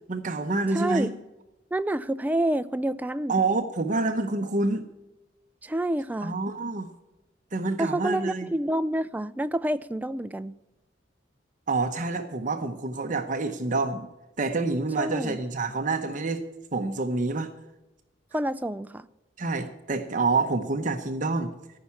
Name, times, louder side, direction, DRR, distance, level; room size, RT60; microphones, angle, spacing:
voice 1, 0.1-1.1 3.3-4.8 6.2-6.9 7.5-8.5 11.7-14.1 14.4-16.4 16.7-17.5 19.4-21.5, right 3 dB, 45° right, 0.8 m, -27 dB
voice 2, 0.7-1.1 1.7-3.3 5.6-6.4 7.8-10.6 15.0-15.4 18.3-19.1, right 1 dB, 10° right, 0.3 m, -28 dB
14.0 x 5.8 x 8.3 m
head